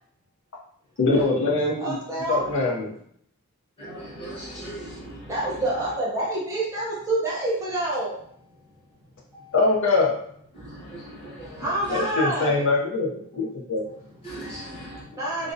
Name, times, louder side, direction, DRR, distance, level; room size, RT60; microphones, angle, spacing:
voice 1, 1.0-1.8 2.3-2.9 9.5-10.1 11.9-13.8, left 3 dB, 60° left, -3 dB, 0.5 m, -23 dB
voice 2, 1.8-2.5 5.3-8.6 9.3-9.6 11.6-12.6 13.8-15.5, right 1 dB, 15° right, -6 dB, 0.6 m, -28 dB
voice 3, 3.8-5.3 10.6-11.6 14.2-15.0, right 1 dB, 25° left, -7 dB, 0.9 m, -39 dB
2.4 x 2.0 x 2.5 m, 0.66 s
head